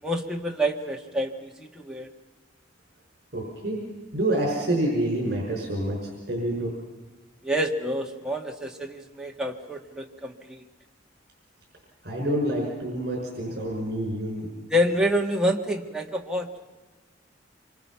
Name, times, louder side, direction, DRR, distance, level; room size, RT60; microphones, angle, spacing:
voice 1, 0.0-2.1 7.4-10.6 14.7-16.6, equal, 5° right, 0 dB, 1.7 m, -27 dB
voice 2, 3.3-3.8 4.1-6.7 12.0-14.5, right 1 dB, 55° right, -1 dB, 6.0 m, -27 dB
26.0 x 25.0 x 5.8 m, 1.3 s
head